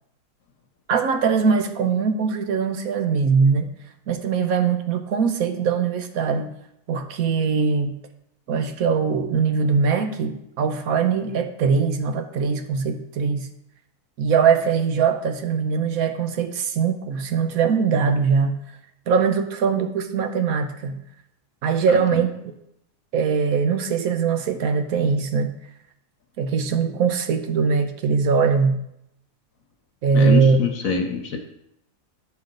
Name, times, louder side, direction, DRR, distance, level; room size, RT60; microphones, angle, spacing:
voice 1, 0.9-3.7 4.1-6.5 6.9-7.9 8.5-13.5 14.2-18.5 19.1-21.0 21.6-22.5 23.1-25.5 26.4-28.8 30.0-30.6, right 5 dB, 65° right, 7 dB, 1.2 m, -21 dB
voice 2, 30.1-31.4, left 5 dB, 60° left, 4 dB, 1.2 m, -24 dB
11.0 x 5.6 x 3.8 m, 0.79 s
omnidirectional pair, 1.7 m